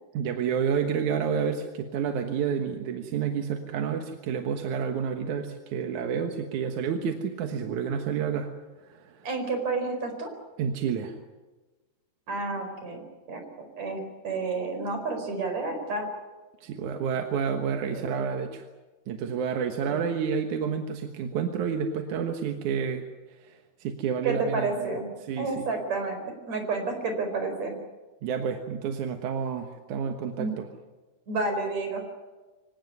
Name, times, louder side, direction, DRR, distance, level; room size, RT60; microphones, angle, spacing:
voice 1, 0.1-8.5 8.8-9.3 10.6-11.2 16.6-18.7 19.1-24.9 25.2-25.7 28.2-30.7, right 7 dB, 60° right, 5 dB, 2.3 m, -30 dB
voice 2, 9.2-10.3 12.3-16.1 17.9-18.1 19.9-20.0 24.2-25.1 25.4-26.2 26.5-27.8 30.4-30.5 31.3-32.0, right 3 dB, 45° right, 5 dB, 5.7 m, -30 dB
24.5 x 18.0 x 9.5 m, 1.2 s
omnidirectional pair, 4.6 m